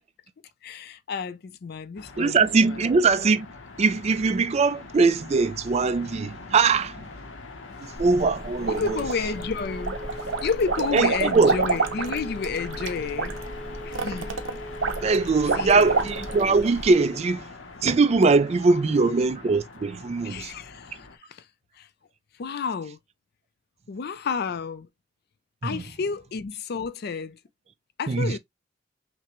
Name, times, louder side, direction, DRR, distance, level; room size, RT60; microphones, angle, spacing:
voice 1, 0.6-2.9 8.7-10.0 10.4-13.4 13.8-14.3 15.6-15.9 18.9-19.1 20.2-21.4 21.8-21.9 22.4-23.0 23.9-24.9 25.6-27.4 28.0-28.4, left 5 dB, 55° left, 0.4 m, -31 dB
sound 1, 2.0-21.2, left 3 dB, 75° left, 0.8 m, -42 dB
voice 2, 2.2-3.5 3.8-7.0 8.0-9.0 10.9-11.6 15.0-17.5 17.8-20.5 25.6-25.8 28.1-28.4, right 4 dB, 35° right, 0.4 m, -21 dB
Telephone, 8.0-16.9, equal, 5° left, 0.9 m, -39 dB
sound 2, 8.6-9.4 9.8-16.5, right 4 dB, 80° right, 0.8 m, -28 dB
5.8 x 2.1 x 3.0 m
head